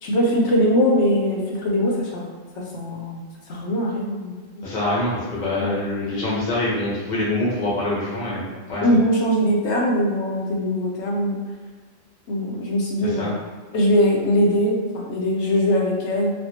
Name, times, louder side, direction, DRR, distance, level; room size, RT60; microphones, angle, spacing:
voice 1, 0.0-2.2 2.6-4.7 5.6-5.8 8.8-11.4 12.3-13.3 13.7-16.3, equal, 65° left, -1 dB, 1.0 m, -21 dB
voice 2, 4.6-8.4 8.7-8.9 13.0-13.3, left 2 dB, 80° left, -7 dB, 1.5 m, -25 dB
4.3 x 2.2 x 2.8 m, 1.5 s
omnidirectional pair, 1.4 m